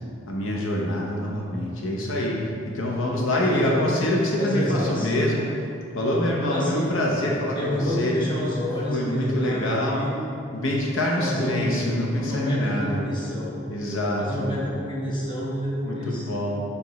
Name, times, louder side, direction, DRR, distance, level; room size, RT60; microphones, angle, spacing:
voice 1, 0.3-8.2 8.9-10.1 10.5-13.0 13.7-14.5 15.8-16.6, left 1 dB, 75° left, -2 dB, 0.8 m, -25 dB
voice 2, 3.3-4.0 4.3-5.1 6.5-6.9 7.5-10.2 11.2-11.7 12.2-13.6 14.2-16.3, left 1 dB, 25° left, -6 dB, 1.2 m, -28 dB
5.1 x 4.8 x 4.0 m, 2.5 s
head